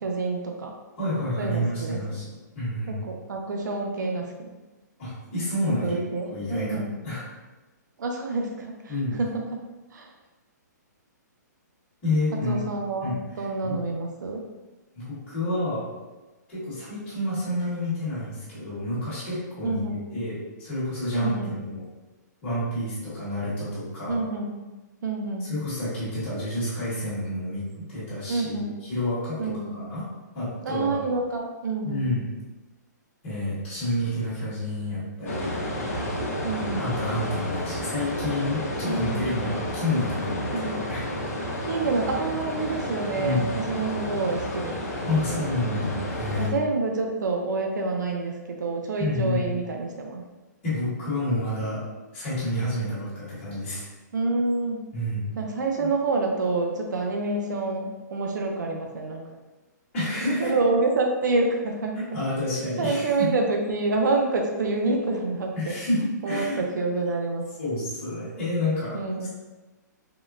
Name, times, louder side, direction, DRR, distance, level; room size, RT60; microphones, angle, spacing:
voice 1, 0.0-0.7 1.4-2.2 2.9-4.6 5.8-7.0 8.0-8.9 9.2-9.6 9.9-10.1 12.5-14.5 19.6-20.0 21.1-21.5 24.1-24.5 25.0-25.5 28.3-28.7 29.4-29.8 30.6-32.0 36.4-36.8 38.8-39.2 40.5-40.8 41.7-45.5 46.4-50.2 54.1-54.8 55.4-59.2 60.4-62.2 62.8-65.7 66.2-67.5 68.9-69.3, right 3 dB, 75° right, 2 dB, 0.5 m, -27 dB
voice 2, 1.0-3.0 5.0-6.0 6.3-7.2 8.9-9.2 12.0-12.6 13.0-13.8 14.9-15.8 16.5-21.8 22.4-24.2 25.4-30.0 30.3-31.0 31.8-32.3 33.2-35.6 36.7-41.0 43.1-43.5 45.1-46.5 49.0-49.5 50.6-51.8 52.1-53.9 54.9-55.3 55.8-55.9 59.9-60.5 62.1-63.3 65.5-66.6 67.6-69.3, left 1 dB, 10° left, -17 dB, 1.2 m, -29 dB
sound 1, 35.3-46.5, equal, 55° left, 0.7 m, -31 dB
3.6 x 2.1 x 2.4 m, 1.1 s
hypercardioid pair, 175°, 10 cm